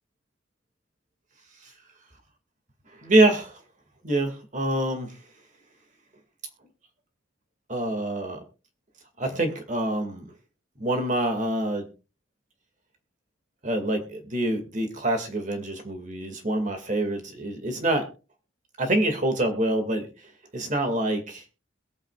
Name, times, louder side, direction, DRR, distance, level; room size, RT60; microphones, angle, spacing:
voice 1, 2.9-3.6 4.0-5.2 7.7-8.4 9.2-10.3 10.8-11.9 13.6-18.1 18.8-20.1 20.5-21.4, right 1 dB, 40° right, 5 dB, 2.1 m, -26 dB
22.0 x 9.0 x 2.4 m, 0.32 s
head